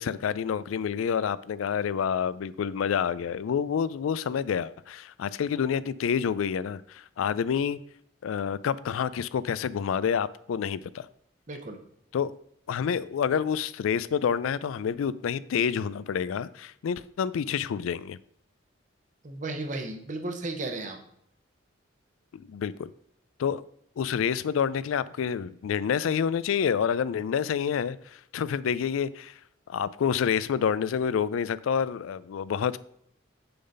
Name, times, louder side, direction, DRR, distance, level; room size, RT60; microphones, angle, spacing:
voice 1, 0.0-7.8 8.2-11.1 12.1-12.3 12.7-18.2 22.3-22.9 23.4-23.6 24.0-29.4 29.7-32.8, left 7 dB, 90° left, 0.3 m, -28 dB
voice 2, 11.5-11.8 19.2-21.0, right 2 dB, 40° right, 0.8 m, -34 dB
6.8 x 3.9 x 5.3 m
head